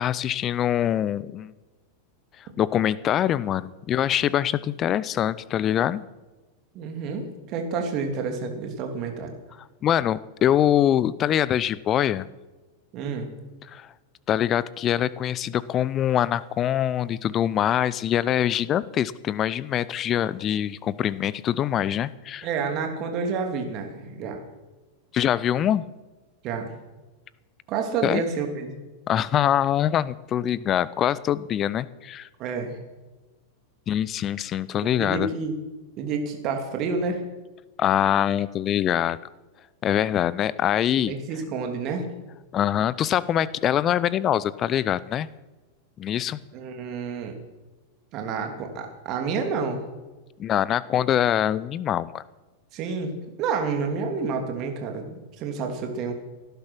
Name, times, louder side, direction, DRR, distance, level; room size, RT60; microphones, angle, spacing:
voice 1, 0.0-1.5 2.4-6.0 9.6-12.3 13.6-13.9 14.3-22.5 25.1-25.8 28.0-28.2 29.1-32.3 33.9-35.3 37.8-39.2 39.8-41.1 42.5-45.3 46.0-46.4 50.4-52.2, left 10 dB, 30° left, 19 dB, 0.6 m, -24 dB
voice 2, 6.7-9.3 12.9-13.3 22.4-24.4 26.4-26.7 27.7-28.7 32.4-32.8 35.0-35.6 36.0-37.2 41.0-42.0 46.5-47.4 48.1-49.8 52.7-53.1 53.4-56.1, right 5 dB, 40° right, 4 dB, 2.8 m, -29 dB
17.5 x 10.5 x 6.2 m, 1.2 s
figure-of-eight pair, 90°, 0 cm